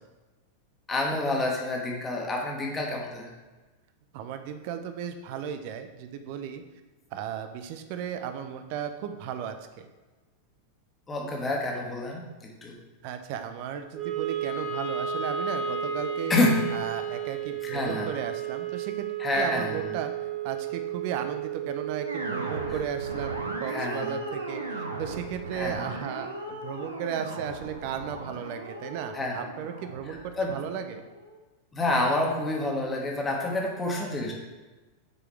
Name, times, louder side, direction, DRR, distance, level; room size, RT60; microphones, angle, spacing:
voice 1, 0.9-3.3 11.1-12.7 16.3-16.6 17.6-18.1 19.2-20.0 23.7-24.1 25.5-25.8 29.1-29.4 30.1-30.5 31.7-34.3, left 2 dB, 15° left, -1 dB, 1.5 m, -28 dB
voice 2, 4.1-6.6 7.1-9.9 13.0-16.3 16.7-19.1 19.4-20.1 20.4-31.0, right 8 dB, 45° right, 8 dB, 0.6 m, -35 dB
Wind instrument woodwind instrument, 13.9-26.2, right 8 dB, 30° right, 1.2 m, -34 dB
sound 1, 22.1-31.4, right 1 dB, 80° right, 0.8 m, -38 dB
8.5 x 4.8 x 3.2 m, 1.2 s
figure-of-eight pair, 90°, 0 cm